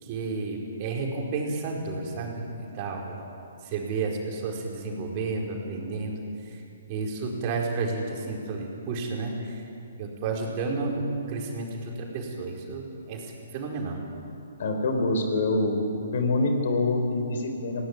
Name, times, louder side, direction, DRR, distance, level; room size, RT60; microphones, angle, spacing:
voice 1, 0.0-3.2 3.6-6.2 6.9-9.6 10.0-14.0, right 3 dB, 35° right, -1 dB, 4.6 m, -31 dB
voice 2, 14.6-15.8 16.1-17.9, left 2 dB, 55° left, 5 dB, 4.1 m, -25 dB
20.0 x 18.0 x 9.5 m, 2.6 s
figure-of-eight pair, 130°, 0 cm